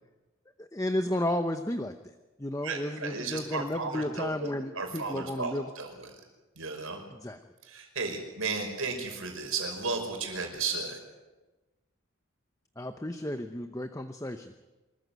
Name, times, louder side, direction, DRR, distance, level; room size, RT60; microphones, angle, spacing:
voice 1, 0.6-5.7 7.1-7.4 12.8-14.5, left 1 dB, 15° left, 7 dB, 0.8 m, -33 dB
voice 2, 2.6-4.5 4.8-6.1 6.6-7.0 7.7-11.0, right 4 dB, 80° right, 4 dB, 5.5 m, -34 dB
25.5 x 14.5 x 9.4 m, 1.1 s
head